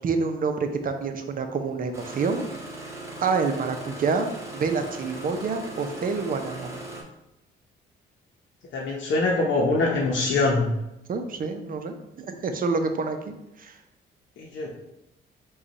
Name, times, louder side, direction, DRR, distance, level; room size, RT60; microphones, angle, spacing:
voice 1, 0.0-2.5 3.2-6.8 11.1-13.8, right 4 dB, 45° right, 6 dB, 0.6 m, -28 dB
Engine starting, 1.9-7.0, right 1 dB, 15° right, 1.1 m, -39 dB
voice 2, 8.7-10.7 14.4-14.7, left 3 dB, 70° left, -2 dB, 0.8 m, -23 dB
5.0 x 2.4 x 4.1 m, 0.89 s
cardioid pair, 90°, 20 cm